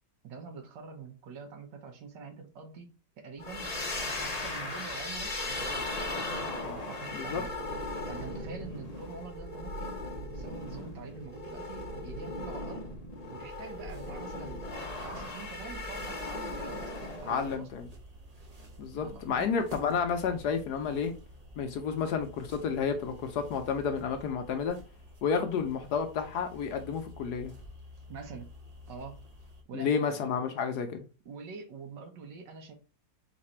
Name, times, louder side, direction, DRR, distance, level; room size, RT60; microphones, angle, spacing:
voice 1, 0.2-3.8 4.2-7.5 8.1-12.9 13.3-14.6 15.0-17.7 19.0-19.5 28.1-28.5 28.9-29.2 29.7-30.3 31.2-32.7, right 5 dB, 75° right, 1.6 m, -45 dB
sound 1, 3.4-17.6, left 2 dB, 40° left, 0.6 m, -37 dB
sound 2, 13.5-29.6, equal, 35° right, 0.6 m, -50 dB
voice 2, 17.3-17.9 18.8-21.1 21.6-24.8 25.2-27.5 29.7-31.1, left 6 dB, 70° left, 1.1 m, -31 dB
4.0 x 2.5 x 4.3 m
omnidirectional pair, 2.0 m